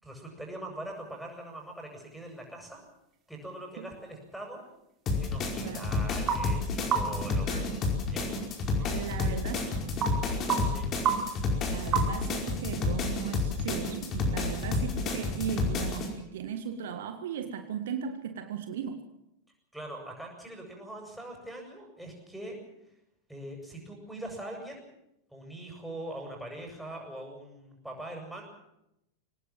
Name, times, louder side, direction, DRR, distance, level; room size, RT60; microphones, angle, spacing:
voice 1, 0.0-2.8 3.3-4.6 5.2-7.7 8.0-8.3 9.2-9.3 10.6-10.9 19.7-22.6 23.3-24.8 25.3-28.4, right 1 dB, ahead, 0 dB, 7.6 m, -42 dB
sound 1, 0.8-12.4, right 7 dB, 30° right, 3.2 m, -37 dB
sound 2, 5.1-16.1, left 3 dB, 30° left, 5.1 m, -30 dB
voice 2, 7.4-7.8 8.9-9.8 11.7-19.0, right 8 dB, 55° right, 8 dB, 1.7 m, -37 dB
24.5 x 18.5 x 7.5 m, 0.84 s
figure-of-eight pair, 90°, 0 cm